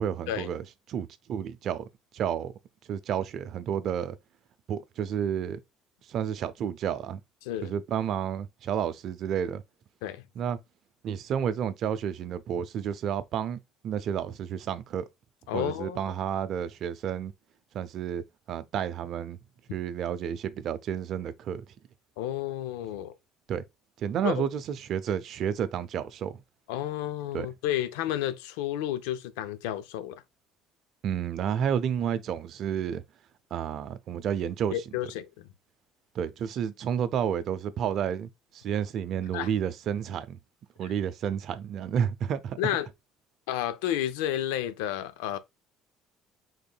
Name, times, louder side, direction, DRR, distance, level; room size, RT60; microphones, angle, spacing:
voice 1, 0.0-1.8 2.1-2.5 2.9-4.2 4.7-5.6 6.1-7.2 7.6-9.6 10.4-10.6 11.0-13.6 13.8-15.1 15.5-17.3 17.7-18.2 18.5-19.4 19.7-21.6 23.5-23.6 24.0-26.4 27.3-27.5 31.0-33.0 33.5-34.8 36.1-40.4 40.8-42.6, right 8 dB, 60° right, 0.5 m, -31 dB
voice 2, 15.5-16.0 22.2-23.1 24.2-24.5 26.7-30.2 34.7-35.5 39.3-39.5 40.8-40.9 42.6-42.9 43.5-45.4, left 12 dB, 80° left, 0.5 m, -31 dB
5.2 x 3.7 x 2.3 m
hypercardioid pair, 75°, 0 cm